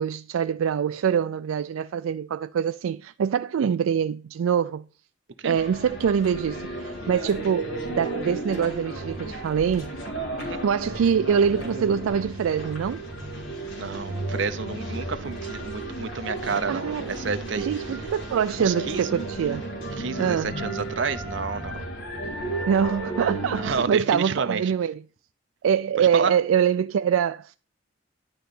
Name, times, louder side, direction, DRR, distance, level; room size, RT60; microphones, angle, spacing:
voice 1, 0.0-4.8 5.4-9.9 10.6-13.0 16.7-17.0 17.6-19.6 20.2-20.6 22.7-25.0 25.6-27.6, right 7 dB, 90° right, 0.3 m, -24 dB
sound 1, 5.6-23.9, right 1 dB, 85° left, 2.6 m, -34 dB
voice 2, 13.8-18.0 18.6-19.1 20.0-21.9 23.5-24.7 26.0-26.3, right 5 dB, 65° right, 0.7 m, -30 dB
11.0 x 3.9 x 6.8 m
head